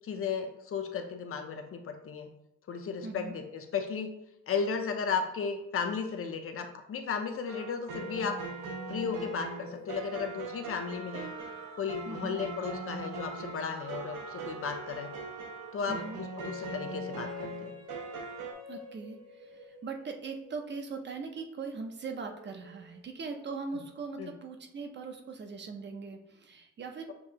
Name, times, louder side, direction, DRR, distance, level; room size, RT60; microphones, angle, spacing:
voice 1, 0.0-2.3 2.7-4.1 4.5-8.3 8.9-11.3 11.8-15.1 15.7-16.0 16.4-17.7 24.2-24.3, left 6 dB, 45° left, 6 dB, 0.5 m, -34 dB
voice 2, 3.0-3.4 12.1-12.4 15.9-16.2 18.7-27.1, right 4 dB, 35° right, 4 dB, 0.5 m, -40 dB
sound 1, 7.5-18.5, right 4 dB, 85° right, 0.8 m, -41 dB
sound 2, 7.9-21.7 22.1-23.7, left 2 dB, 55° right, 1.1 m, -48 dB
6.7 x 2.7 x 2.7 m, 0.84 s
wide cardioid pair, 175°, 31 cm